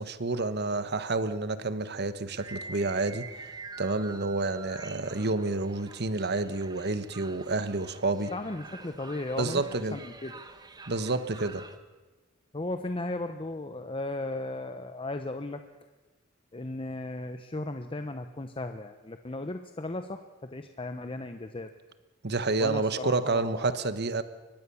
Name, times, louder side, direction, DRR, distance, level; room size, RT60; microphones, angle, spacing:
voice 1, 0.0-3.3 3.8-8.3 9.4-10.0 10.9-11.6 22.2-24.2, right 3 dB, 55° right, 12 dB, 1.3 m, -29 dB
sound 1, 2.4-11.8, right 3 dB, 20° right, 1.4 m, -47 dB
voice 2, 8.3-9.6 9.9-10.3 12.5-15.6 16.5-21.7 22.6-23.7, left 2 dB, 25° left, 8 dB, 0.9 m, -36 dB
23.5 x 19.5 x 7.1 m, 1.2 s
head